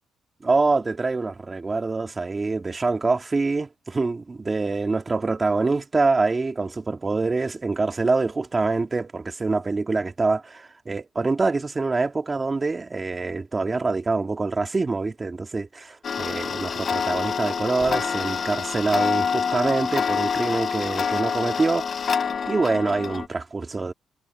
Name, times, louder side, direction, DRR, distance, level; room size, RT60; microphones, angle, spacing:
voice 1, 0.4-21.9 22.5-23.9, right 3 dB, 25° right, 2.5 m, -25 dB
Tick-tock, 16.0-23.3, left 6 dB, 45° left, 0.5 m, -26 dB
cardioid pair, 90°, 0 cm